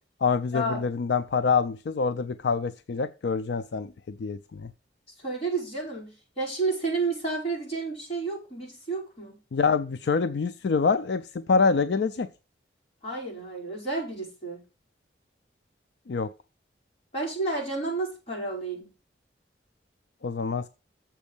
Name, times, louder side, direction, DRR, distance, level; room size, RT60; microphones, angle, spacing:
voice 1, 0.2-4.7 9.5-12.3 16.1-16.3 20.2-20.7, left 5 dB, 70° left, 0.4 m, -26 dB
voice 2, 5.2-9.3 13.0-14.6 17.1-18.9, right 3 dB, 35° left, 5.1 m, -31 dB
7.4 x 5.2 x 7.0 m
head